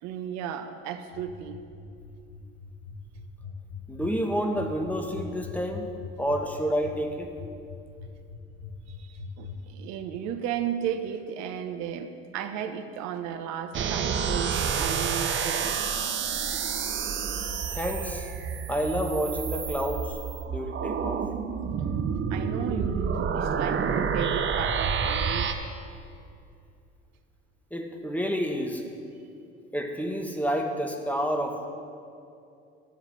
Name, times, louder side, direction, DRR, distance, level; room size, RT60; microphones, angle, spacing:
voice 1, 0.0-1.6 8.9-15.8 22.3-25.6, right 9 dB, 60° right, 8 dB, 1.1 m, -34 dB
sound 1, 1.1-9.5, left 6 dB, 70° left, 3.2 m, -41 dB
voice 2, 3.9-5.9 6.2-7.3 17.7-18.3 18.7-20.2 20.5-21.3 27.7-28.8 29.7-31.7, equal, 5° left, 3 dB, 1.9 m, -29 dB
sound 2, 13.7-25.5, right 6 dB, 40° right, 1.1 m, -29 dB
13.5 x 7.1 x 8.3 m, 2.6 s
hypercardioid pair, 60°, 31 cm